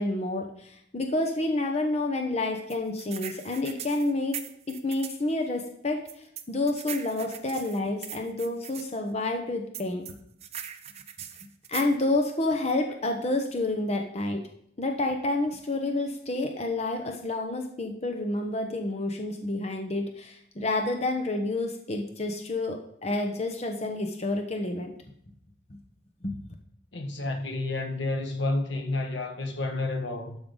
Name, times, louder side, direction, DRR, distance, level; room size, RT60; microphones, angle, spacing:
voice 1, 0.0-4.4 4.7-6.0 6.5-10.0 11.7-14.4 14.8-24.9 26.2-26.4, left 2 dB, 35° left, 1.0 m, -29 dB
sound 1, 2.7-5.2 6.1-8.9 9.7-12.0, right 9 dB, 35° right, 0.6 m, -40 dB
voice 2, 26.9-30.4, left 2 dB, 80° left, 1.4 m, -30 dB
12.5 x 5.7 x 3.9 m
head